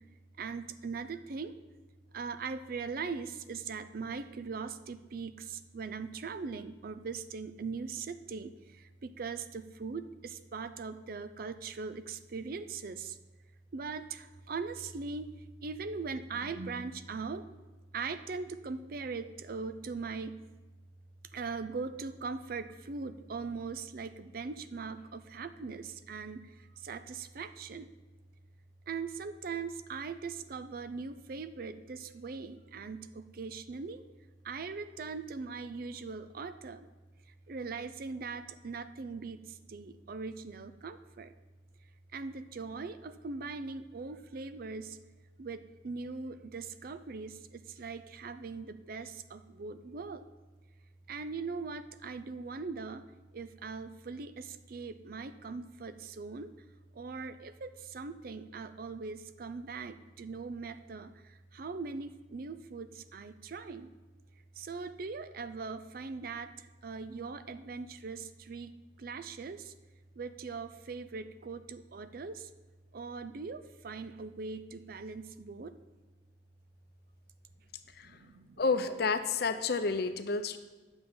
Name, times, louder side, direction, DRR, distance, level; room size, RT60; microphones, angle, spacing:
voice 1, 0.4-1.5 2.1-13.2 13.7-15.3 15.6-17.4 17.9-20.3 21.3-26.4 26.8-27.9 28.9-34.0 34.4-36.9 37.5-41.3 42.1-45.0 45.4-50.2 51.1-53.0 53.3-56.5 57.0-61.1 61.5-63.9 64.6-66.5 66.8-68.7 69.0-69.7 70.2-72.5 72.9-75.8 78.0-78.6, right 4 dB, 55° right, 12 dB, 0.5 m, -40 dB
voice 2, 78.6-80.6, left 4 dB, 60° left, 9 dB, 0.7 m, -30 dB
10.0 x 7.0 x 5.5 m, 1.2 s
head